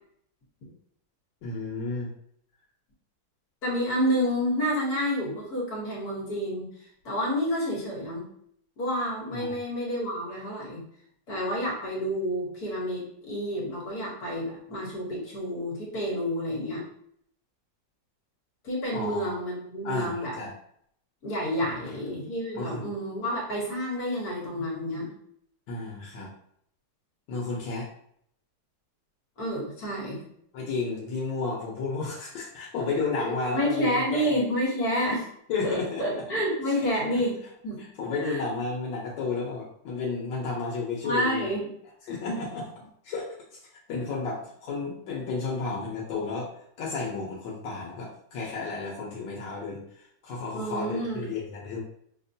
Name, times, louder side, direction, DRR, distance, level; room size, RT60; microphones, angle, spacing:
voice 1, 1.4-2.1 9.3-9.6 18.9-19.3 19.8-20.5 21.6-21.7 22.5-22.8 25.7-26.3 27.3-27.9 30.5-34.3 35.5-36.0 37.8-41.5 42.1-43.3 43.9-46.5 46.8-51.8, left 4 dB, 85° left, -3 dB, 1.5 m, -32 dB
voice 2, 3.6-6.7 7.1-8.2 8.8-10.8 11.3-16.8 18.6-20.4 21.2-25.1 29.4-30.2 33.5-35.3 35.6-37.4 37.6-37.8 38.2-38.4 41.0-41.7 42.3-42.4 50.5-51.2, equal, 60° left, -4 dB, 1.7 m, -29 dB
5.6 x 2.1 x 2.7 m, 0.69 s
omnidirectional pair, 1.9 m